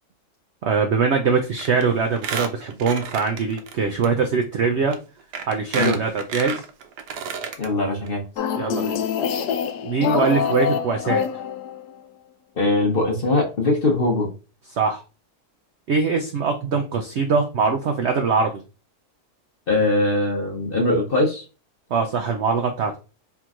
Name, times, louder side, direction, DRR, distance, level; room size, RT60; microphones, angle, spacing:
voice 1, 0.6-5.0 5.5-6.6 8.6-9.0 9.8-11.3 14.7-15.0 15.9-18.5 21.9-22.9, right 5 dB, 70° right, 4 dB, 0.6 m, -22 dB
Squeak, 1.6-1.8 2.1-3.7 4.0-4.1 4.9-5.0 5.3-7.7 8.1-8.2 8.4-8.5, right 6 dB, 90° right, 1.3 m, -31 dB
voice 2, 7.6-8.2 12.6-14.3 19.7-21.4, left 2 dB, 40° left, 0 dB, 1.0 m, -21 dB
sound 1, 8.4-11.9, left 8 dB, 80° left, 1.1 m, -25 dB
4.4 x 3.5 x 2.5 m, 0.32 s
omnidirectional pair, 1.7 m